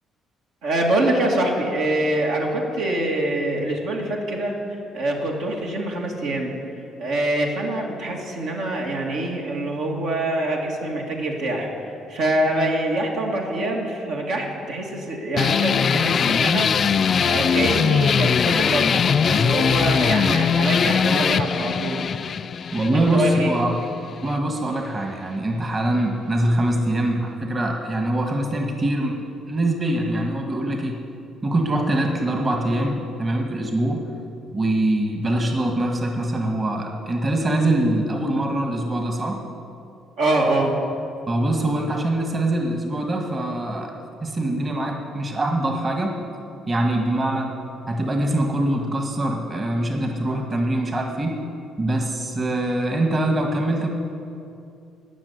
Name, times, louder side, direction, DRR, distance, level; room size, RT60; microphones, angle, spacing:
voice 1, 0.6-6.6 7.0-16.7 17.2-22.0 22.9-23.5 40.2-40.8, right 1 dB, 80° right, -1 dB, 2.3 m, -25 dB
sound 1, 15.4-24.4, left 7 dB, 50° left, 0.3 m, -21 dB
voice 2, 22.7-23.7 24.1-29.2 29.5-31.0 31.4-34.0 34.5-39.4 41.3-43.9 44.2-46.2 46.7-47.5 47.9-51.4 51.8-53.9, right 1 dB, 35° right, 2 dB, 1.6 m, -23 dB
15.0 x 6.3 x 9.4 m, 2.6 s
cardioid pair, 85°, 0 cm